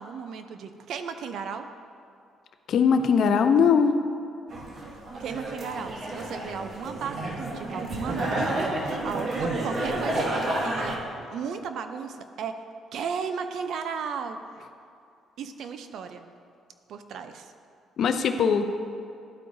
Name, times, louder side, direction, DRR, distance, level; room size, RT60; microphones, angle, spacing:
voice 1, 0.0-1.7 5.2-12.6 12.9-14.4 15.4-16.3 16.9-17.5, right 6 dB, 70° right, 8 dB, 0.5 m, -35 dB
voice 2, 2.7-4.0 18.0-18.7, left 6 dB, 60° left, 8 dB, 0.5 m, -20 dB
sound 1, 4.5-11.0, right 1 dB, 50° right, 1.1 m, -30 dB
12.0 x 4.6 x 2.6 m, 2.5 s
cardioid pair, 90°, 0 cm